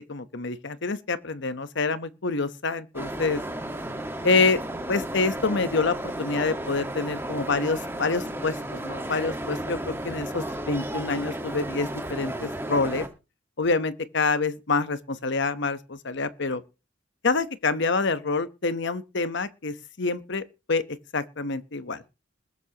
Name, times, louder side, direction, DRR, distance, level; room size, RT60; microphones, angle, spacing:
voice 1, 0.0-3.4 4.2-4.6 4.9-13.1 13.6-16.6 17.2-20.4 20.7-20.8 21.1-22.0, left 3 dB, 60° left, 1.0 m, -27 dB
sound 1, 2.9-13.1, right 1 dB, 10° right, 1.5 m, -33 dB
21.0 x 10.5 x 2.9 m
head